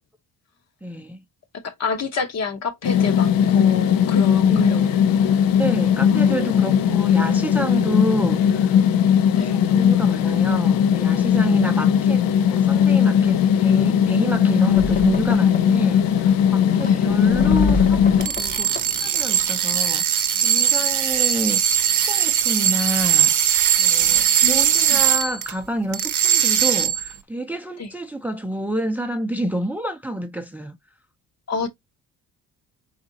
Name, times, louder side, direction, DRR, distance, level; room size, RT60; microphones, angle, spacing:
voice 1, 0.8-1.2 4.5-5.0 5.6-8.9 9.5-21.7 22.1-30.8, right 1 dB, 5° right, 0.6 m, -28 dB
voice 2, 1.6-4.8 6.1-6.8 9.4-9.6 11.7-11.8 16.8-17.0 24.4-25.0 27.8-27.9 31.5-31.7, left 5 dB, 50° left, 1.0 m, -29 dB
sound 1, 2.8-18.3, left 8 dB, 80° left, 0.5 m, -18 dB
sound 2, 14.8-19.8, left 2 dB, 25° left, 0.8 m, -30 dB
sound 3, 18.1-25.5 25.9-27.1, right 10 dB, 60° right, 0.7 m, -20 dB
4.1 x 3.6 x 2.7 m
cardioid pair, 105°, 34 cm